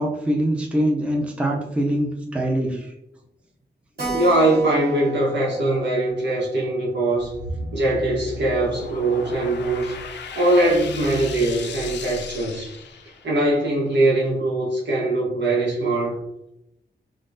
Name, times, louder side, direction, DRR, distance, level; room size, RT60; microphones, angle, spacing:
voice 1, 0.0-2.9, right 1 dB, 5° right, -1 dB, 0.4 m, -23 dB
Keyboard (musical), 4.0-9.0 9.3-9.4 9.7-9.8 10.0-10.1 10.7-11.1, right 3 dB, 60° right, 1.4 m, -35 dB
voice 2, 4.1-7.3 7.7-10.0 10.3-12.8 13.2-16.2, right 1 dB, 80° right, -3 dB, 1.0 m, -21 dB
sound 1, 7.2-13.5, left 2 dB, 85° left, 0.4 m, -35 dB
3.6 x 2.1 x 2.5 m, 0.86 s
wide cardioid pair, 175°, 18 cm